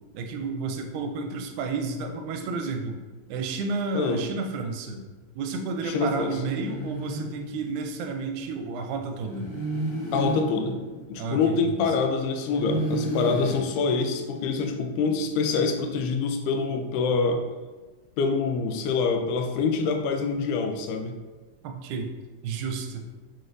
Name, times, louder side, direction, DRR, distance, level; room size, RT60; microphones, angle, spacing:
voice 1, 0.1-3.0 3.3-5.0 5.4-9.5 11.2-12.0 13.3-13.6 21.6-22.1 22.4-23.1, right 4 dB, 85° right, 4 dB, 2.0 m, -31 dB
voice 2, 5.8-6.4 10.1-10.8 11.1-17.4 18.2-21.2, left 4 dB, 85° left, 5 dB, 2.0 m, -25 dB
sound 1, 6.0-8.1 9.2-11.9 12.4-14.7, right 1 dB, 50° left, 1.9 m, -33 dB
6.0 x 3.2 x 2.5 m, 1.3 s
omnidirectional pair, 3.5 m